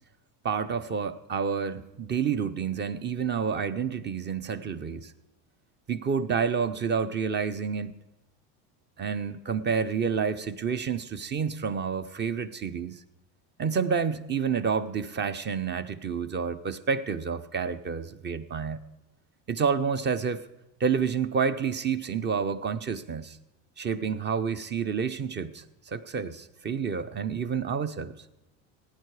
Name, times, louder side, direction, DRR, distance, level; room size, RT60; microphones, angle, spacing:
voice 1, 0.4-5.1 5.9-8.0 9.0-13.0 13.6-18.8 19.5-20.5 20.8-23.4 23.8-28.2, right 6 dB, 30° right, 13 dB, 0.7 m, -29 dB
16.0 x 9.4 x 4.8 m, 0.97 s
supercardioid pair, 110°, 38 cm